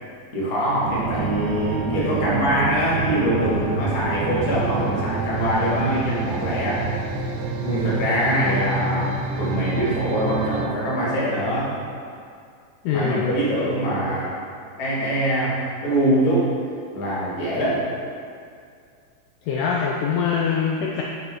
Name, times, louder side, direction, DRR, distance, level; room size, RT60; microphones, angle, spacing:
voice 1, 0.3-7.0 7.6-11.7 12.9-14.3 14.8-15.5 15.8-16.5 16.9-17.8, equal, 45° left, -7 dB, 1.2 m, -23 dB
sound 1, 0.8-10.7, right 4 dB, 85° right, 2.4 m, -27 dB
voice 2, 12.8-13.4 19.4-21.0, left 6 dB, 90° left, -1 dB, 1.8 m, -23 dB
7.3 x 6.2 x 3.5 m, 2.3 s
omnidirectional pair, 4.2 m